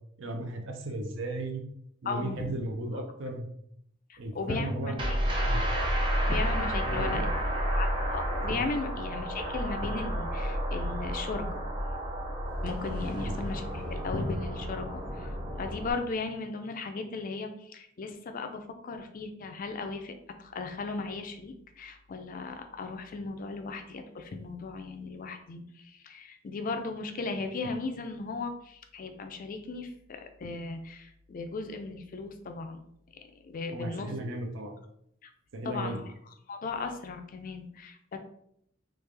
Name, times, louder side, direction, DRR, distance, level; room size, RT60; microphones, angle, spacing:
voice 1, 0.2-1.6 2.0-3.5 4.2-5.6 6.9-7.2 8.5-8.6 13.2-13.3 33.7-34.8 35.5-36.0, right 1 dB, 65° right, 3 dB, 0.6 m, -35 dB
voice 2, 2.1-2.5 4.1-5.2 6.2-7.3 7.7-11.6 12.6-32.8 33.1-34.1 35.2-35.3 35.6-36.0 36.5-38.2, left 3 dB, 45° left, 6 dB, 0.4 m, -36 dB
sound 1, 5.0-15.9, equal, 25° right, 0.7 m, -31 dB
3.3 x 2.4 x 3.3 m, 0.72 s
head